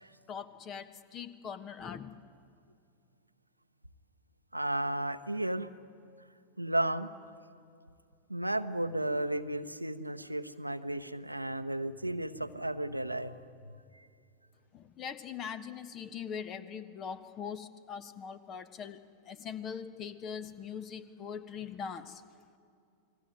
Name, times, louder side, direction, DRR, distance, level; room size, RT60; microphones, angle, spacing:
voice 1, 0.3-0.9 1.1-2.2 14.7-19.0 19.3-22.2, left 7 dB, 30° left, 13 dB, 1.4 m, -41 dB
voice 2, 4.5-5.7 6.6-7.1 8.3-13.4, right 1 dB, 85° right, 10 dB, 0.9 m, -33 dB
29.0 x 20.5 x 9.3 m, 2.5 s
figure-of-eight pair, 90°, 0 cm